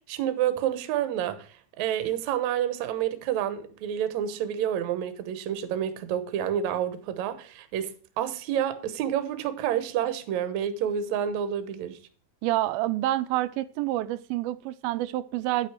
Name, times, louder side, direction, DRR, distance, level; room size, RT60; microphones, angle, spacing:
voice 1, 0.1-1.5 1.8-7.9 8.2-12.0, right 10 dB, 70° right, 2.0 m, -29 dB
voice 2, 12.4-15.7, right 15 dB, 90° right, 2.5 m, -28 dB
9.9 x 7.6 x 4.8 m
omnidirectional pair, 4.2 m